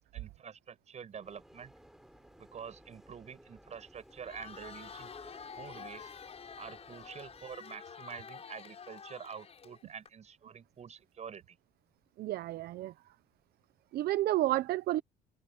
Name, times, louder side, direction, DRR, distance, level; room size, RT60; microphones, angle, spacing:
voice 1, 0.1-1.7 2.4-5.1 5.6-6.1 6.6-11.6, right 7 dB, 40° right, 7.7 m, -47 dB
sound 1, 1.2-7.6, equal, ahead, 7.6 m, -58 dB
Crowd, 4.1-10.1, left 6 dB, 40° left, 6.2 m, -48 dB
voice 2, 12.2-12.9 13.9-15.0, right 15 dB, 65° right, 0.6 m, -30 dB
cardioid pair, 110°, 17 cm